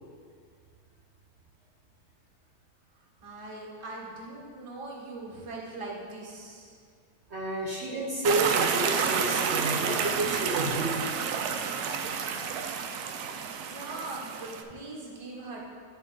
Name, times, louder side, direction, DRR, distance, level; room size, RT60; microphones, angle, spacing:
voice 1, 3.2-6.8 13.6-15.7, right 2 dB, 25° right, -3 dB, 1.0 m, -41 dB
voice 2, 7.3-11.0, right 2 dB, 50° right, -4 dB, 1.1 m, -30 dB
sound 1, 8.2-14.6, right 6 dB, 85° right, 1.1 m, -30 dB
11.0 x 3.8 x 3.8 m, 2.1 s
omnidirectional pair, 1.6 m